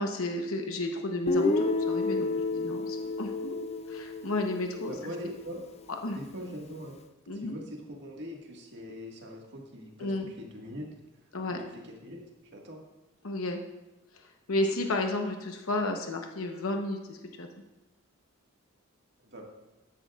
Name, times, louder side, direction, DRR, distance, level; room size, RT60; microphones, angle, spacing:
voice 1, 0.0-3.5 3.9-4.9 6.0-6.2 7.3-7.6 10.0-10.3 11.3-11.7 13.2-13.6 14.5-17.5, left 2 dB, 75° left, 3 dB, 1.0 m, -32 dB
Guitar, 1.3-5.2, left 3 dB, 30° left, 0.5 m, -30 dB
voice 2, 4.9-5.6 6.1-7.0 7.3-10.9 11.7-12.2 12.5-12.8 19.2-19.4, equal, 55° right, 0 dB, 1.8 m, -42 dB
13.5 x 10.5 x 2.4 m, 1.1 s
head